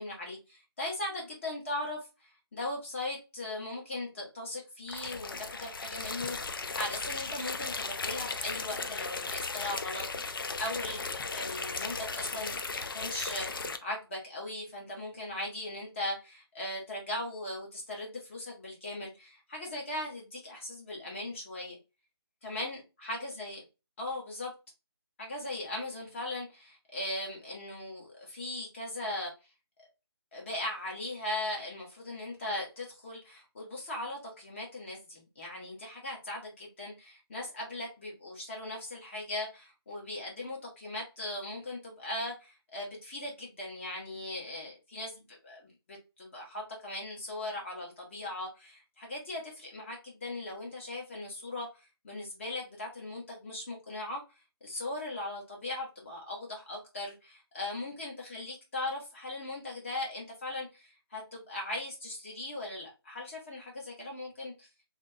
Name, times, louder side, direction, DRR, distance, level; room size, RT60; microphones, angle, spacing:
voice 1, 0.0-12.6 12.9-21.8 22.4-23.6 24.0-24.5 25.2-29.3 30.3-51.7 52.0-54.2 54.6-64.7, left 1 dB, 30° left, -1 dB, 1.3 m, -39 dB
sound 1, 4.9-13.8, left 4 dB, 55° left, 0.5 m, -36 dB
3.5 x 2.8 x 3.3 m, 0.27 s
hypercardioid pair, 170°, 14 cm